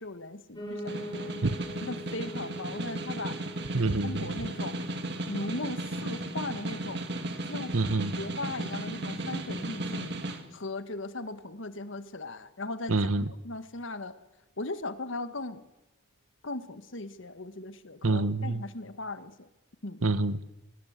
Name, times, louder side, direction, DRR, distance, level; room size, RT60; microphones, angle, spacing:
voice 1, 0.0-1.3 1.8-3.4 4.0-4.8 5.3-7.1 7.4-7.8 8.2-14.2 14.6-15.6 16.4-19.5 19.8-20.0, left 2 dB, 70° left, 1.5 m, -38 dB
Piano, 0.5-9.6 10.0-11.2 11.5-11.6 11.8-11.9 12.2-12.3 12.8-12.9, equal, 20° left, 5.7 m, -45 dB
Snare drum, 0.7-10.4, right 2 dB, 55° right, 2.3 m, -35 dB
voice 2, 3.7-4.3 7.7-8.1 12.9-13.3 18.0-18.6 20.0-20.5, right 2 dB, 90° right, 1.1 m, -27 dB
25.5 x 20.0 x 8.1 m
head